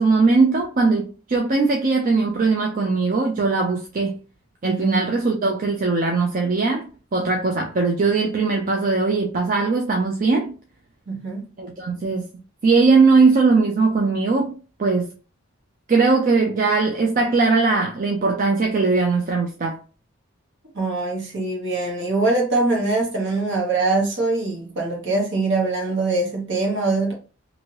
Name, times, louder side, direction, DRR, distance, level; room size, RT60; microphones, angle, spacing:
voice 1, 0.0-4.1 4.6-10.5 11.6-12.3 12.6-14.5 14.8-15.1 15.9-19.8, right 4 dB, 40° right, 0.5 m, -20 dB
voice 2, 4.6-5.0 7.2-7.3 11.1-11.5 20.7-27.1, right 3 dB, 60° right, 1.2 m, -23 dB
2.8 x 2.6 x 2.9 m
head